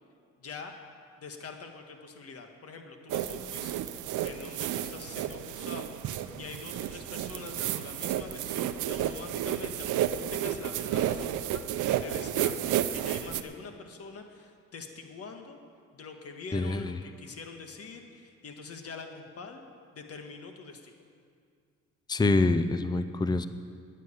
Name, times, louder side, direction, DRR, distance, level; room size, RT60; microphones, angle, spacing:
voice 1, 0.4-0.7 1.2-15.6 15.9-19.6 19.9-20.9, left 4 dB, 50° left, 5 dB, 1.6 m, -45 dB
sound 1, 3.1-13.4, right 11 dB, 80° right, 0.7 m, -32 dB
voice 2, 16.5-17.0 22.1-23.5, left 2 dB, 15° left, 11 dB, 0.5 m, -26 dB
9.4 x 9.3 x 9.9 m, 2.2 s
cardioid pair, 90°, 30 cm